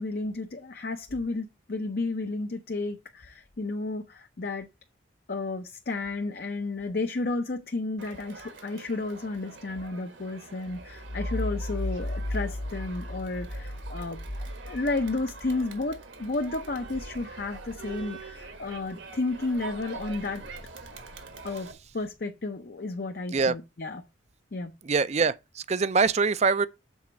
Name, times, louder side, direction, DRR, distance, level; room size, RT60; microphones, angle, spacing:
voice 1, 0.0-4.7 5.3-14.2 14.7-20.4 21.4-24.0 24.5-24.7, left 3 dB, 50° left, 0.7 m, -32 dB
Crowd, 8.0-21.7, right 4 dB, 75° right, 1.6 m, -45 dB
sound 1, 10.7-18.9 19.3-21.9, left 1 dB, 85° left, 1.7 m, -37 dB
voice 2, 24.8-26.7, right 4 dB, 35° right, 0.4 m, -24 dB
7.2 x 4.3 x 5.7 m
head